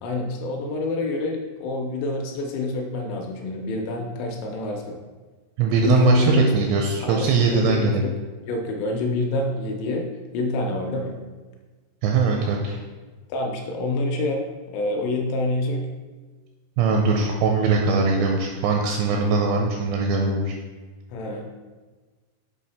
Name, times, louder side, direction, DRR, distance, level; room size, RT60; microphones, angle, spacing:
voice 1, 0.0-5.0 5.8-6.5 7.0-8.1 8.5-10.0 10.3-11.2 13.3-14.4 14.7-15.8 21.1-21.5, left 2 dB, 80° left, 2 dB, 2.8 m, -26 dB
voice 2, 5.6-8.1 12.0-12.8 16.8-20.5, right 4 dB, 85° right, 1 dB, 2.5 m, -21 dB
7.6 x 4.1 x 4.1 m, 1.4 s
omnidirectional pair, 5.4 m